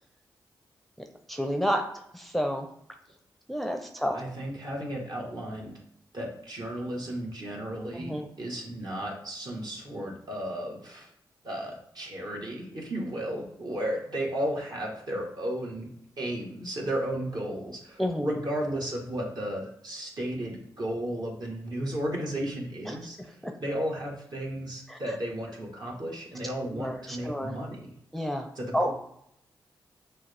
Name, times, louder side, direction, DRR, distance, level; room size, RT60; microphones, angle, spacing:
voice 1, 1.3-1.8 2.1-2.7 3.5-4.2 7.9-8.3 18.0-18.3 23.4-23.5 24.9-25.0 26.7-26.9 27.2-27.6 28.1-28.5 28.7-28.9, equal, ahead, 4 dB, 0.6 m, -29 dB
voice 2, 4.1-5.8 6.1-11.1 11.4-27.9 28.5-28.9, right 1 dB, 55° right, -2 dB, 1.5 m, -34 dB
6.0 x 2.3 x 3.4 m, 0.73 s
cardioid pair, 45°, 8 cm